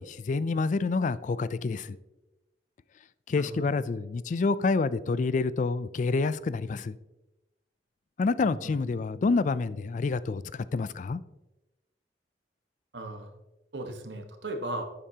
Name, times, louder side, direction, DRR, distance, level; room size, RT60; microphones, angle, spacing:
voice 1, 0.0-2.0 3.3-7.0 8.2-11.2, left 4 dB, 45° left, 0.3 m, -28 dB
voice 2, 3.4-3.8 8.4-8.7 12.9-13.3 13.7-14.8, right 2 dB, 85° right, 1.3 m, -37 dB
11.5 x 8.9 x 2.8 m
head